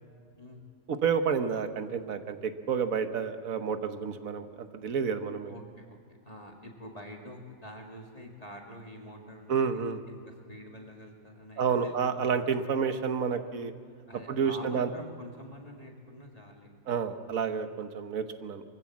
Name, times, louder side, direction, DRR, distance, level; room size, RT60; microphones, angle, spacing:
voice 1, 0.9-5.5 9.5-10.0 11.6-13.7 14.3-14.9 16.9-18.6, right 6 dB, 75° right, 8 dB, 1.5 m, -30 dB
voice 2, 5.5-6.0 6.2-12.3 14.1-16.8, equal, 25° left, 0 dB, 2.1 m, -47 dB
23.5 x 15.0 x 7.4 m, 2.3 s
omnidirectional pair, 1.5 m